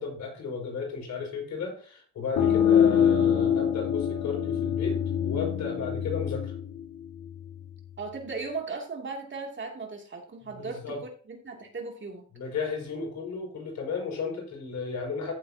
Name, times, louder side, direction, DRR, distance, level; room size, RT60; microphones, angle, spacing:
voice 1, 0.0-6.5 10.4-11.0 12.3-15.3, left 5 dB, 65° left, 0 dB, 5.9 m, -34 dB
sound 1, 2.4-7.8, left 8 dB, 85° left, 1.8 m, -25 dB
voice 2, 8.0-12.3, right 4 dB, 40° right, 1 dB, 2.8 m, -37 dB
14.5 x 7.0 x 2.9 m, 0.41 s
cardioid pair, 90°, 30 cm